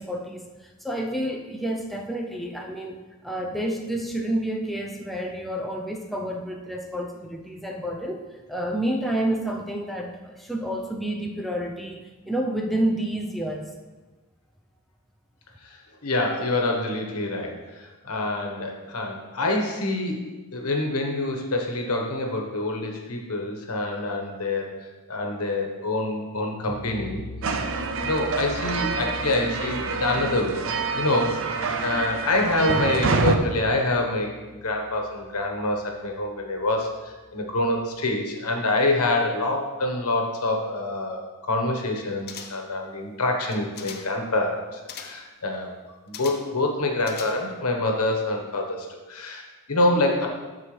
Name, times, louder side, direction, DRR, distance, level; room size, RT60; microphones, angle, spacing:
voice 1, 0.0-13.7, right 1 dB, ahead, 0 dB, 0.6 m, -29 dB
voice 2, 16.0-27.2 27.8-30.6 30.9-45.7 46.1-50.3, left 2 dB, 85° left, 2 dB, 1.2 m, -26 dB
sound 1, 26.7-37.8, left 1 dB, 30° left, 1.8 m, -43 dB
sound 2, 27.4-33.3, right 4 dB, 60° right, 0.6 m, -27 dB
sound 3, 42.3-42.8 43.4-44.2 44.9-45.3 46.1-46.6 47.0-47.7 48.0-48.1, left 7 dB, 45° left, 0.7 m, -41 dB
13.5 x 4.7 x 3.3 m, 1.2 s
head